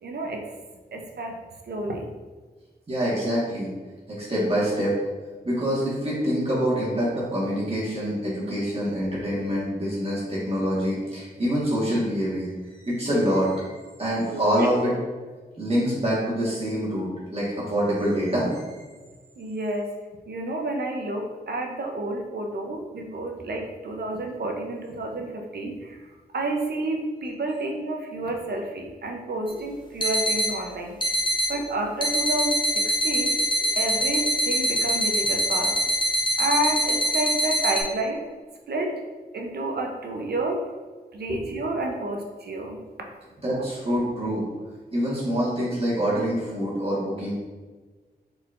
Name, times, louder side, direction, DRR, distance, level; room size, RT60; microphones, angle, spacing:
voice 1, 0.0-0.4 0.9-1.4 1.7-2.0 19.4-19.9 20.3-26.0 26.3-31.0 31.5-33.3 33.7-35.8 36.4-38.2 38.7-39.0 39.3-40.6 41.1-42.8, right 2 dB, 70° right, 2 dB, 0.7 m, -30 dB
voice 2, 2.9-3.7 4.1-4.9 5.4-12.5 12.8-13.7 14.0-15.0 15.6-18.8 23.4-23.5 31.5-31.6 41.3-41.6 43.4-44.4 44.9-47.3, equal, 35° right, -7 dB, 1.4 m, -25 dB
sound 1, 29.5-29.6 30.0-30.5 31.0-31.5 32.0-37.8, equal, 25° left, 0.8 m, -24 dB
4.5 x 4.0 x 2.5 m, 1.4 s
wide cardioid pair, 80°, 17 cm